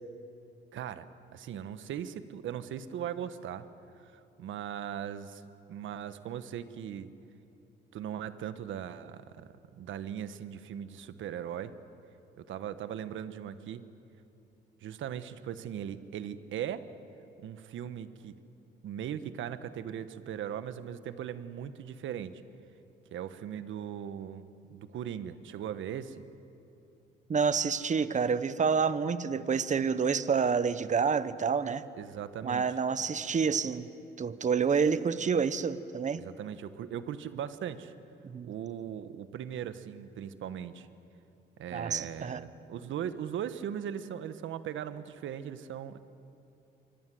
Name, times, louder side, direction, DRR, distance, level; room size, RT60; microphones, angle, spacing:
voice 1, 0.7-1.1 1.3-3.6 4.0-5.4 5.7-7.1 7.9-11.7 12.4-13.8 14.8-16.9 17.4-18.3 18.8-22.3 23.1-26.2 32.0-32.6 36.2-37.9 38.4-40.9 41.6-46.0, right 9 dB, 75° right, 11 dB, 1.4 m, -39 dB
voice 2, 27.3-31.9 32.4-33.9 34.2-36.2 38.2-38.5 41.7-42.4, right 6 dB, 40° right, 14 dB, 1.1 m, -28 dB
25.0 x 24.5 x 7.9 m, 2.8 s
cardioid pair, 90°, 20 cm